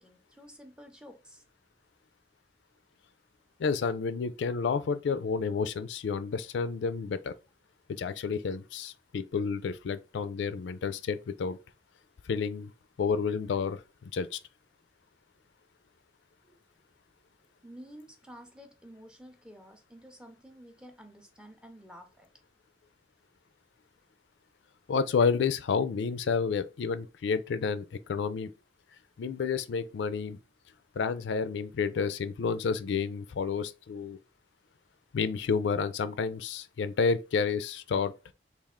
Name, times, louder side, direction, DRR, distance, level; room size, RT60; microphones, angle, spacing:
voice 1, 0.0-1.4 16.4-16.6 17.6-22.3, equal, 5° right, 0.4 m, -51 dB
voice 2, 3.6-7.3 7.9-11.6 12.3-12.7 13.0-14.4 24.9-28.5 29.2-30.4 31.0-34.2 35.1-38.1, left 5 dB, 85° left, 0.4 m, -30 dB
3.3 x 2.4 x 3.6 m
head